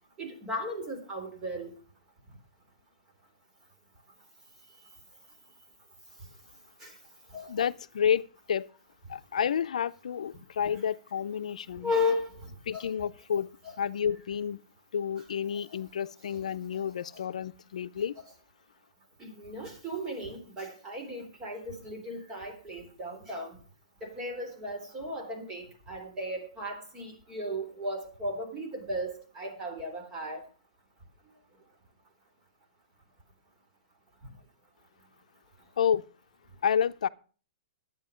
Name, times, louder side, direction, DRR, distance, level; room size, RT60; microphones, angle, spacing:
voice 1, 0.2-1.7 6.8-6.9 7.3-7.5 11.8-12.8 13.6-13.7 17.1-17.2 19.2-23.6 24.0-30.4, left 1 dB, 20° right, 3.4 m, -35 dB
voice 2, 7.5-8.7 9.1-11.9 12.7-13.5 13.8-14.6 14.9-18.1 35.8-36.0 36.6-37.1, left 8 dB, 85° left, 0.6 m, -30 dB
12.0 x 9.3 x 5.1 m
hypercardioid pair, 160°, 4 cm